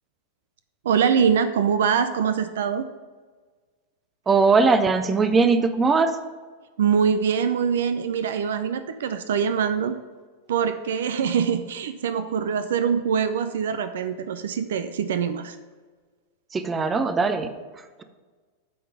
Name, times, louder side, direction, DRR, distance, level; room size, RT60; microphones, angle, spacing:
voice 1, 0.8-2.9 6.8-10.0 10.5-15.6, right 7 dB, 60° right, 10 dB, 0.4 m, -23 dB
voice 2, 4.3-6.2 16.5-17.5, right 4 dB, 20° right, 9 dB, 0.6 m, -20 dB
8.5 x 3.8 x 6.6 m, 1.4 s
figure-of-eight pair, 90°, 0 cm